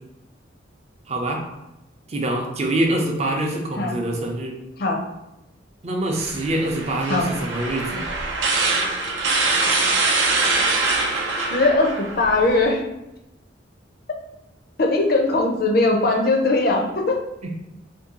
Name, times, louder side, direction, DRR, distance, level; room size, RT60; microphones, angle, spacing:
voice 1, 1.1-1.4 2.1-4.5 5.8-8.0 17.4-17.5, right 1 dB, 35° right, 2 dB, 0.5 m, -25 dB
sound 1, 6.2-12.7, right 3 dB, 80° right, 0.5 m, -23 dB
voice 2, 11.5-12.8 14.8-17.2, left 2 dB, 55° left, 1 dB, 0.5 m, -20 dB
2.7 x 2.3 x 3.7 m, 0.93 s
head